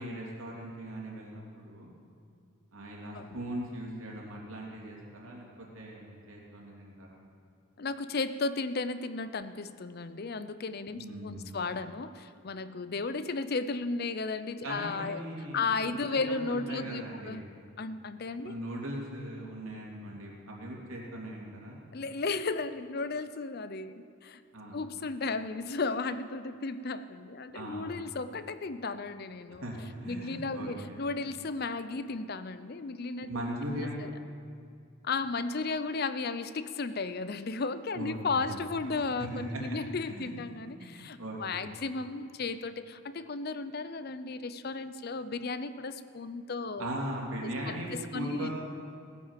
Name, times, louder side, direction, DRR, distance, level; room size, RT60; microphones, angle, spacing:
voice 1, 0.0-1.9 2.7-7.2 10.9-11.5 14.6-15.8 16.1-17.4 18.4-21.8 24.5-24.8 27.5-28.0 29.6-31.0 33.3-34.0 37.9-38.6 39.3-39.6 40.1-40.3 40.8-41.7 46.8-48.5, right 1 dB, 75° right, -2 dB, 3.1 m, -39 dB
voice 2, 7.8-15.3 15.5-17.4 17.8-18.5 21.9-24.4 24.7-29.6 30.0-33.3 33.7-34.1 35.0-46.9 47.4-48.5, left 3 dB, 45° left, 12 dB, 0.5 m, -34 dB
16.5 x 9.9 x 7.5 m, 2.4 s
head